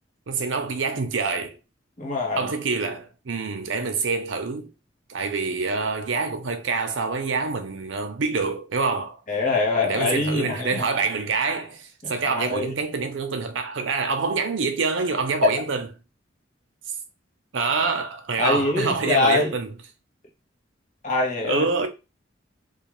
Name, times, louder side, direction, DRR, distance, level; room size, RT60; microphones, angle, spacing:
voice 1, 0.3-1.6 2.4-4.7 5.1-9.2 9.8-15.9 17.5-19.8 21.4-21.9, right 4 dB, 80° right, 0.6 m, -26 dB
voice 2, 2.0-2.5 9.3-10.9 12.0-12.7 18.4-19.5 21.0-21.6, left 3 dB, 40° left, 0.9 m, -24 dB
2.4 x 2.4 x 3.0 m
head